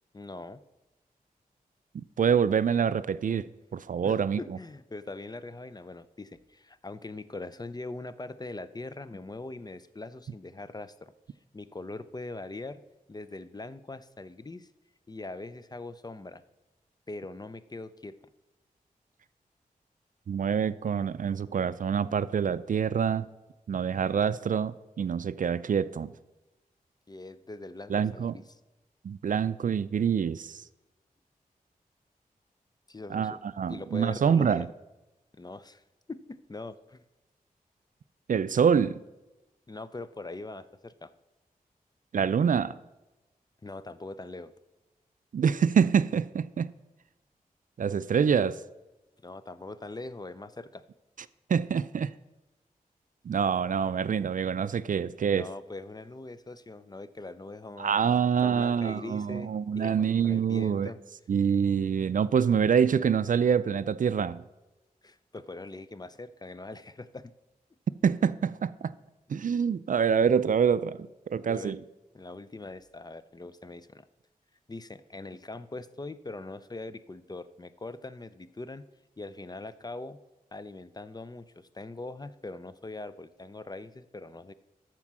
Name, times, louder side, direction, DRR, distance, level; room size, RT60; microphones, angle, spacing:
voice 1, 0.1-0.6 4.0-11.1 11.5-12.8 13.1-14.7 15.1-16.4 17.1-18.2 27.1-28.4 32.9-33.4 33.7-34.7 35.3-35.8 36.1-37.0 39.7-41.1 43.6-44.5 49.2-50.8 55.2-59.5 59.7-61.0 65.0-67.3 71.5-71.8 72.1-74.1 74.7-78.9 79.2-80.2 80.5-84.5, left 2 dB, 25° left, 0.5 m, -42 dB
voice 2, 1.9-4.6 20.3-23.3 23.7-26.1 27.9-28.4 29.0-30.6 33.1-34.7 38.3-39.0 42.1-42.8 45.3-46.7 47.8-48.6 51.5-52.1 53.3-55.5 57.8-60.9 61.3-64.4 68.0-68.9 69.3-71.8, right 7 dB, 60° right, 0.4 m, -26 dB
13.5 x 4.5 x 6.0 m
cardioid pair, 45°, 15 cm